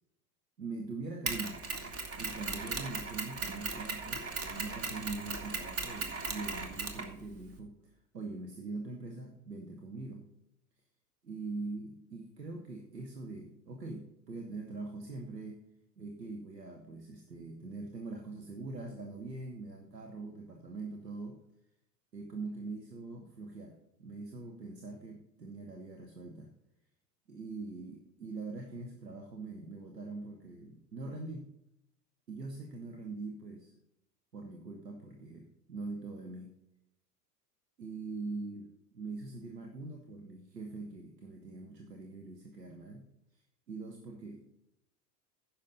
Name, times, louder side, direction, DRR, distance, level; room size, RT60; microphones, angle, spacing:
voice 1, 0.6-10.3 11.2-15.6 16.0-21.4 22.1-26.5 27.3-31.5 32.3-33.7 34.3-36.5 37.8-43.1 43.3-43.4 43.7-44.4, right 3 dB, 80° right, 3 dB, 1.3 m, -43 dB
Mechanisms, 1.3-7.6, right 4 dB, 30° right, 1.8 m, -38 dB
15.0 x 6.4 x 4.0 m, 0.80 s
figure-of-eight pair, 80°, 49 cm